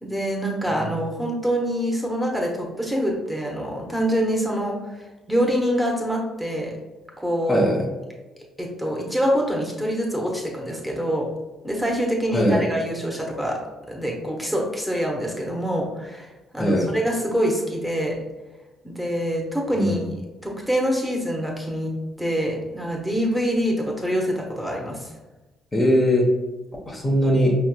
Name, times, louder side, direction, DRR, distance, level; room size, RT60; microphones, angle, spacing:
voice 1, 0.0-6.7 7.2-7.7 8.6-11.3 11.6-13.6 13.9-18.2 18.8-20.0 20.4-21.9 22.2-25.1, equal, 5° right, -1 dB, 1.1 m, -25 dB
voice 2, 7.5-7.8 12.3-12.6 16.6-16.9 19.7-20.1 25.7-26.3 26.9-27.5, equal, 25° left, -2 dB, 1.0 m, -20 dB
5.3 x 3.2 x 2.2 m, 1.1 s
hypercardioid pair, 45°, 0 cm